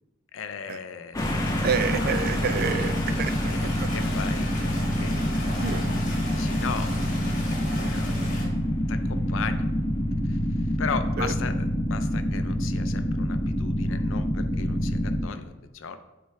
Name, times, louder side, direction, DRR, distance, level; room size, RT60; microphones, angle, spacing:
voice 1, 0.3-1.4 2.0-2.3 3.6-4.5 5.0-5.3 6.2-7.4 7.9-8.1 8.9-9.7 10.3-10.4 10.8-11.5 11.9-16.0, left 6 dB, 70° left, 10 dB, 0.5 m, -36 dB
sound 1, 1.1-15.2, equal, 15° left, 0.4 m, -26 dB
Stream, 1.2-8.4, left 2 dB, 40° left, 1.4 m, -37 dB
voice 2, 1.6-3.5 3.8-3.9 5.6-6.0 11.2-11.3, right 6 dB, 50° right, 12 dB, 0.3 m, -29 dB
8.5 x 3.2 x 3.5 m, 1.0 s
head